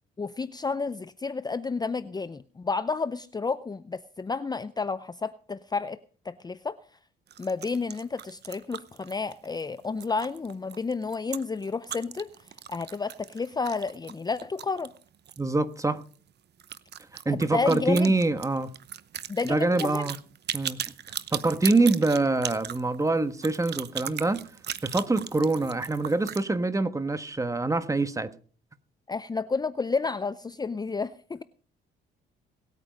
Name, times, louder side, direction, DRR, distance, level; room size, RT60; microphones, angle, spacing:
voice 1, 0.2-6.0 6.2-6.8 7.4-12.3 12.7-14.9 17.3-18.1 19.3-20.0 29.1-31.4, left 4 dB, 20° left, 0.6 m, -31 dB
sound 1, 7.3-15.5 15.7-15.8 16.1-16.2 16.6-26.4, right 10 dB, 55° right, 0.9 m, -38 dB
voice 2, 15.4-16.0 17.2-18.7 19.4-20.2 20.5-20.8 21.3-24.4 24.8-28.3, right 2 dB, 15° right, 1.3 m, -25 dB
18.5 x 9.0 x 5.2 m
cardioid pair, 90°, 20 cm